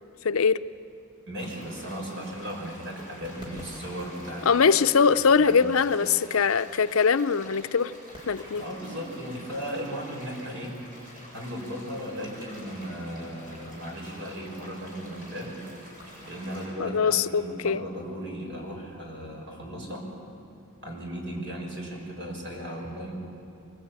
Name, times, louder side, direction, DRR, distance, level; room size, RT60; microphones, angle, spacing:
voice 1, 0.2-0.6 4.5-7.9 8.3-8.6 16.8-17.8, left 5 dB, 75° left, 12 dB, 0.6 m, -22 dB
voice 2, 1.3-4.6 5.0-6.0 8.6-10.8 11.3-15.6 16.2-20.0 20.8-23.1, equal, 60° right, 0 dB, 6.1 m, -36 dB
sound 1, 1.4-16.6, equal, 40° right, 7.6 m, -48 dB
sound 2, 3.2-5.9 8.1-10.5 12.1-14.6 16.0-18.4, equal, 25° right, 4.4 m, -51 dB
23.5 x 22.5 x 8.9 m, 2.7 s
head